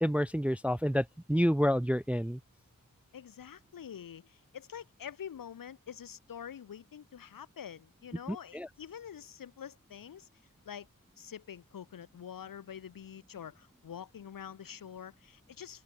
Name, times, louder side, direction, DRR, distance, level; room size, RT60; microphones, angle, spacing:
voice 1, 0.0-2.4 8.5-8.7, equal, 5° right, 0.4 m, -28 dB
voice 2, 3.1-10.3 10.6-10.9 11.2-15.8, left 8 dB, 80° left, 1.1 m, -46 dB
open air
wide cardioid pair, 110°, 34 cm